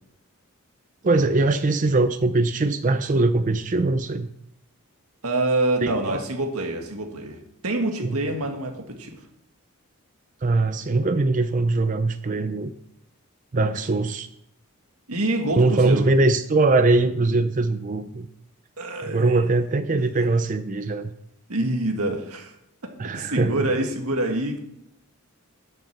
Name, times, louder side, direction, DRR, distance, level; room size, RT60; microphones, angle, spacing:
voice 1, 1.0-4.3 5.8-6.2 8.0-8.2 10.4-12.7 13.5-14.3 15.6-18.3 19.0-21.1 23.0-23.6, right 2 dB, 35° right, 10 dB, 0.5 m, -21 dB
voice 2, 5.2-7.4 7.6-9.2 15.1-16.1 18.8-19.4 21.5-22.5 23.1-24.6, right 2 dB, 85° right, 3 dB, 1.9 m, -26 dB
10.5 x 6.5 x 5.9 m, 0.76 s
head